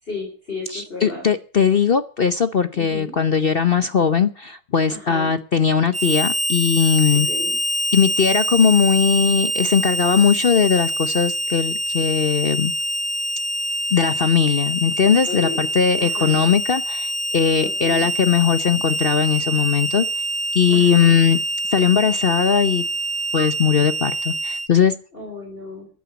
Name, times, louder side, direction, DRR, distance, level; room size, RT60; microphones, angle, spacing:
voice 1, 0.0-1.2 2.7-3.1 4.9-5.3 7.1-7.6 15.3-15.6 16.0-16.4 17.6-18.1 20.7-21.2 25.1-25.9, left 3 dB, 25° left, 0 dB, 4.2 m, -33 dB
voice 2, 0.7-7.3 7.9-12.7 13.9-20.1 20.5-21.4 21.7-22.8 23.3-24.9, left 7 dB, 65° left, 11 dB, 0.5 m, -19 dB
Harmonica, 5.9-24.7, equal, 10° right, 0.5 m, -25 dB
14.5 x 10.0 x 8.2 m, 0.41 s
omnidirectional pair, 2.1 m